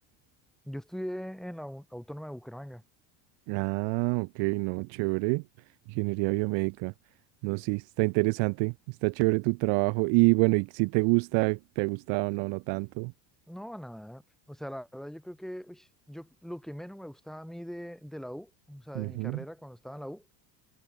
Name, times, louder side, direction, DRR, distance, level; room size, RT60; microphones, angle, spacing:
voice 1, 0.7-2.8 13.5-14.2 14.5-20.3, equal, ahead, 3.7 m, -41 dB
voice 2, 3.5-5.4 5.9-6.9 7.4-13.1 18.9-19.4, right 34 dB, 60° right, 0.6 m, -27 dB
supercardioid pair, 110°, 49 cm